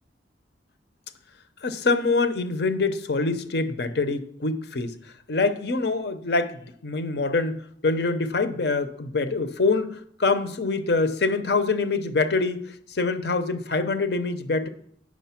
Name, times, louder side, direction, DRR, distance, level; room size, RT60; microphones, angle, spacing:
voice 1, 1.6-4.9 5.3-12.6 12.9-14.7, left 3 dB, 60° left, 11 dB, 0.7 m, -25 dB
9.3 x 6.4 x 5.7 m, 0.66 s
head